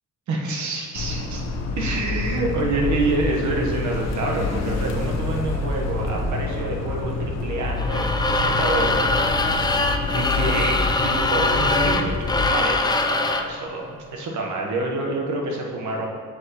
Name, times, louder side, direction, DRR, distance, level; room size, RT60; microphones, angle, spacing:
voice 1, 0.3-1.4 1.8-9.0 10.0-12.2 12.4-16.1, right 2 dB, 70° right, 0 dB, 1.1 m, -27 dB
sound 1, 0.9-12.5, left 3 dB, 60° left, 0.9 m, -27 dB
sound 2, 7.8-13.5, left 2 dB, 15° left, 0.4 m, -22 dB
7.5 x 5.7 x 3.0 m, 2.1 s
cardioid pair, 90°, 30 cm